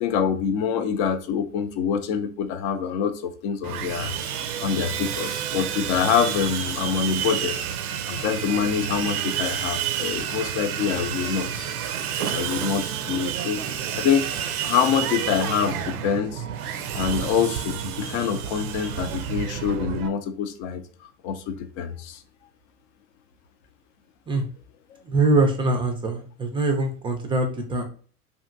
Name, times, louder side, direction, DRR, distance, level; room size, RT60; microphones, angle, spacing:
voice 1, 0.0-4.1 4.6-11.7 12.2-14.3 14.6-20.8 21.2-22.2, left 7 dB, 50° left, 0.5 m, -26 dB
Sawing, 3.6-20.1, right 9 dB, 80° right, 0.5 m, -30 dB
voice 2, 25.0-27.8, right 2 dB, 10° right, 0.4 m, -23 dB
2.8 x 2.6 x 2.5 m
hypercardioid pair, 90°, 44 cm